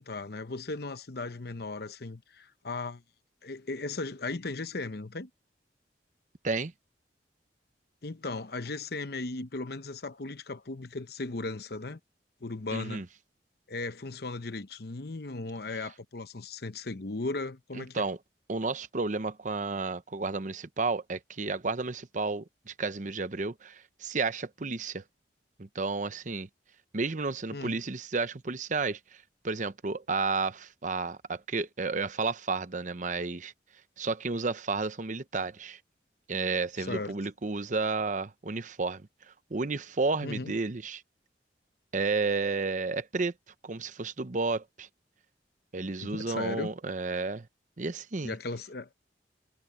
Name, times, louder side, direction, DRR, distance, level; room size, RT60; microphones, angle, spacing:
voice 1, 0.0-3.0 3.4-5.3 8.0-12.0 12.4-13.0 13.7-18.1 27.5-27.8 36.8-37.1 40.2-40.5 46.0-46.7 48.2-48.9, left 3 dB, 60° left, 0.9 m, -37 dB
voice 2, 12.7-13.0 17.8-18.2 18.5-25.0 25.6-26.5 26.9-29.0 29.4-33.5 34.0-35.8 36.3-39.0 39.5-41.0 41.9-43.3 43.6-44.9 45.7-47.5 47.8-48.4, right 3 dB, 45° right, 0.8 m, -32 dB
head